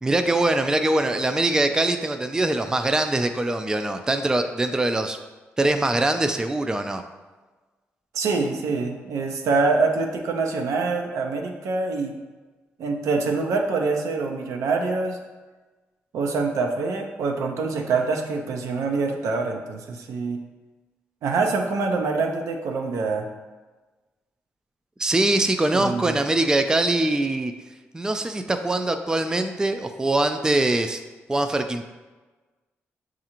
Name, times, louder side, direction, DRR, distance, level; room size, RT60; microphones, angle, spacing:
voice 1, 0.0-5.2 5.6-7.0 25.0-27.5 27.9-31.0 31.3-31.8, right 2 dB, 15° right, 7 dB, 0.3 m, -23 dB
voice 2, 8.1-12.2 12.8-15.2 16.1-20.4 21.2-23.3 25.7-26.2, right 4 dB, 80° right, 2 dB, 0.5 m, -25 dB
6.4 x 2.5 x 2.9 m, 1.3 s
supercardioid pair, 60°, 5 cm